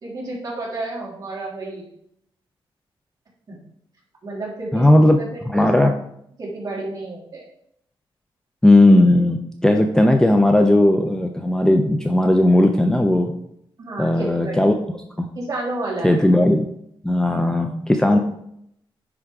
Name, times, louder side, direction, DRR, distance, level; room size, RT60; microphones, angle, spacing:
voice 1, 0.0-1.8 3.5-3.6 4.2-5.8 6.4-7.4 13.8-14.6 15.3-16.2 18.0-18.2, right 2 dB, 40° right, -5 dB, 3.0 m, -31 dB
voice 2, 4.7-5.2 5.5-5.9 8.6-13.3 14.0-14.7 15.2-15.3 16.0-16.7 17.0-18.2, left 1 dB, 5° left, 4 dB, 0.5 m, -16 dB
9.8 x 3.6 x 4.9 m, 0.73 s
wide cardioid pair, 130°, 9 cm